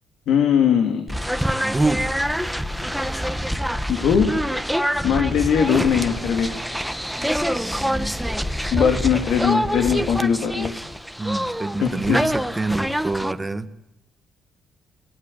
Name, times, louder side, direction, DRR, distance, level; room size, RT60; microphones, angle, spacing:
voice 1, 0.3-1.1 3.9-4.4 5.0-6.5 8.7-10.7 11.8-12.2, left 7 dB, 80° left, 5 dB, 3.2 m, -20 dB
sound 1, 1.1-13.3, equal, ahead, 1.6 m, -26 dB
voice 2, 1.6-2.1 7.4-8.2 11.2-13.7, right 2 dB, 15° right, 8 dB, 1.9 m, -26 dB
27.5 x 22.0 x 8.7 m, 0.89 s
cardioid pair, 90°, 0 cm